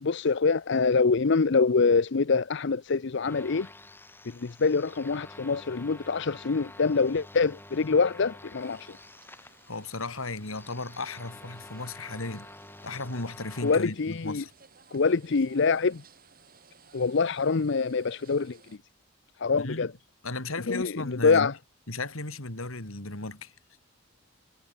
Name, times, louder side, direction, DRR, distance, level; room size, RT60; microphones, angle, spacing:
voice 1, 0.0-3.7 4.3-9.0 13.6-14.4 14.9-16.0 16.9-18.6 19.4-19.9 20.7-21.5, left 4 dB, 55° left, 0.6 m, -25 dB
sound 1, 3.2-13.8, left 2 dB, 10° left, 2.3 m, -49 dB
sound 2, 8.6-18.8, right 5 dB, 45° right, 6.1 m, -59 dB
voice 2, 9.3-12.5 12.8-14.5 19.6-19.9 20.2-21.5 21.9-23.5, left 2 dB, 80° left, 3.6 m, -35 dB
head